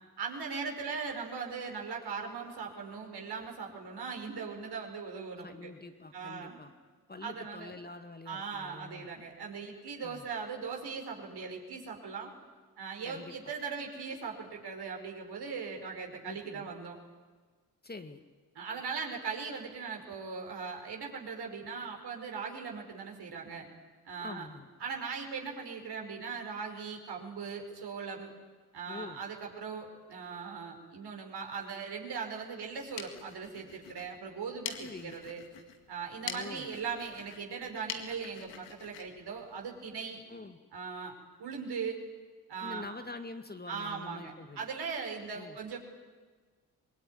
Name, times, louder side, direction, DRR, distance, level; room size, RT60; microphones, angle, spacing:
voice 1, 0.2-5.7 6.1-6.6 7.2-7.8 8.3-12.3 12.8-17.0 18.6-23.7 24.1-24.5 24.8-28.3 28.7-35.4 35.9-40.2 40.7-41.1 41.4-42.1 42.5-42.9 43.7-45.8, right 5 dB, 60° right, 1 dB, 5.3 m, -39 dB
voice 2, 5.4-6.7 7.1-9.1 10.0-10.3 13.0-13.5 16.2-16.7 17.8-18.2 24.2-24.7 28.9-29.2 34.8-35.2 36.3-36.7 40.3-40.6 42.6-44.7 45.3-45.6, left 3 dB, 20° left, 8 dB, 1.9 m, -45 dB
sound 1, 32.6-40.2, left 8 dB, 70° left, 2.2 m, -46 dB
25.5 x 22.0 x 9.7 m, 1.4 s
hypercardioid pair, 40°, 45 cm